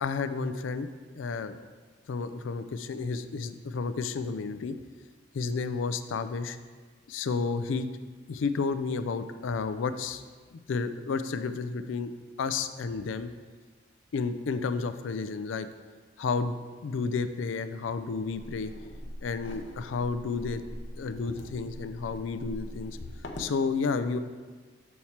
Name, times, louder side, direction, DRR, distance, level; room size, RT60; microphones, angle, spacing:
voice 1, 0.0-0.9 1.1-1.6 2.1-4.8 5.3-6.6 7.1-7.9 8.3-10.2 10.5-12.1 12.4-13.3 14.1-15.7 16.2-16.6 16.8-18.7 19.2-20.6 21.0-23.0 23.4-24.2, left 4 dB, 80° left, 11 dB, 0.4 m, -31 dB
sound 1, 18.3-23.6, left 1 dB, 65° left, 0.8 m, -43 dB
7.1 x 4.6 x 4.3 m, 1.4 s
head